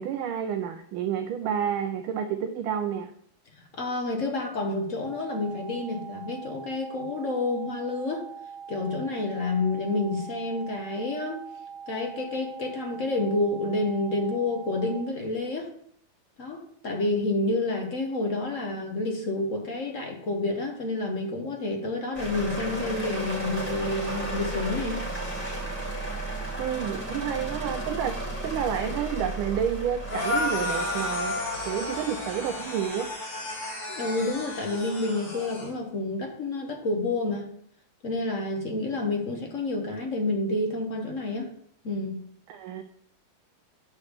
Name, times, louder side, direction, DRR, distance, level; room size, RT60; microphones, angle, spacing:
voice 1, 0.0-3.1 26.6-31.3 31.6-33.1 42.5-42.8, right 8 dB, 75° right, 6 dB, 1.3 m, -30 dB
voice 2, 3.7-8.3 8.7-11.4 11.9-15.7 16.4-25.0 33.9-37.5 38.0-41.5 41.8-42.2, left 2 dB, 50° left, 2 dB, 1.0 m, -29 dB
sound 1, 5.0-15.0, right 6 dB, 55° right, 1.5 m, -42 dB
sound 2, 22.1-33.1, right 1 dB, 5° left, 1.6 m, -34 dB
sound 3, 30.1-35.7, left 2 dB, 85° left, 3.4 m, -32 dB
8.3 x 3.3 x 6.5 m, 0.65 s
omnidirectional pair, 2.4 m